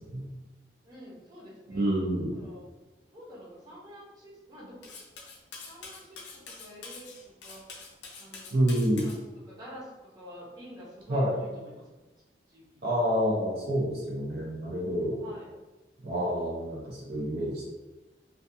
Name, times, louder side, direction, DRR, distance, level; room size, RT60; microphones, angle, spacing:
voice 1, 0.8-1.9 2.3-2.6 3.1-4.8 5.7-7.6 8.2-8.8 9.0-9.2 9.4-11.8 12.5-12.8 15.2-15.5, equal, 20° right, -7 dB, 0.7 m, -48 dB
voice 2, 1.7-2.4 8.5-9.1 11.1-11.3 12.8-15.2 16.0-17.6, equal, 55° right, -4 dB, 0.5 m, -28 dB
Cutlery silverware, 4.8-9.2, left 4 dB, 85° left, 0.4 m, -45 dB
2.3 x 2.3 x 2.6 m, 1.1 s
head